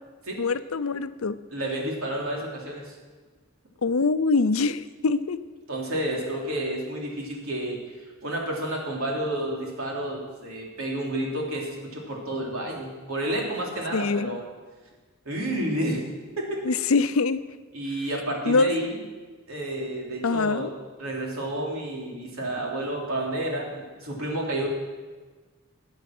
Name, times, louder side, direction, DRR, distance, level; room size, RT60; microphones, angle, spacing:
voice 1, 0.4-1.4 3.8-5.4 13.9-14.4 16.6-17.4 18.5-18.7 20.2-20.7, left 4 dB, 90° left, 14 dB, 0.6 m, -24 dB
voice 2, 1.5-2.9 5.7-7.8 8.2-14.4 15.3-16.0 16.4-16.6 17.7-19.0 19.5-20.7 21.0-24.7, right 1 dB, 85° right, -1 dB, 3.5 m, -30 dB
20.5 x 8.2 x 6.1 m, 1.3 s
head